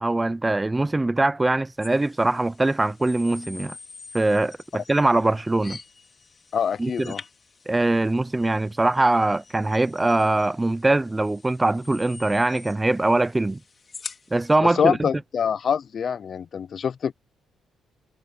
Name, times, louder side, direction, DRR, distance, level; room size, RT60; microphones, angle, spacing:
voice 1, 0.0-3.8 4.1-5.8 6.8-7.1 7.7-13.6 14.3-15.1, right 2 dB, 15° right, 0.5 m, -22 dB
sound 1, 1.8-14.6, left 4 dB, 35° left, 4.1 m, -46 dB
voice 2, 6.5-7.2 14.6-17.1, left 7 dB, 50° left, 0.5 m, -25 dB
cardioid pair, 90°, 0 cm